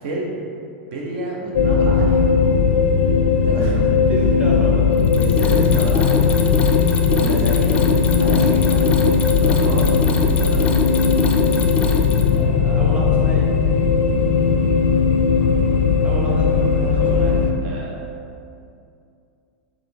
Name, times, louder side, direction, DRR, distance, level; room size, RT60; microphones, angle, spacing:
voice 1, 0.0-0.4 0.9-2.3 3.4-3.9 5.2-6.7 7.1-7.8 8.2-8.9 9.4-10.8 16.9-17.3 17.6-18.0, right 1 dB, 65° right, -2 dB, 0.7 m, -29 dB
sound 1, 1.5-17.5, left 5 dB, 90° left, 0.5 m, -17 dB
voice 2, 4.1-4.7 12.3-13.4 16.0-17.4, left 1 dB, 20° right, -4 dB, 0.8 m, -30 dB
Mechanisms, 5.0-12.4, left 4 dB, 20° left, 0.3 m, -26 dB
3.9 x 3.0 x 3.4 m, 2.5 s
supercardioid pair, 135°, 6 cm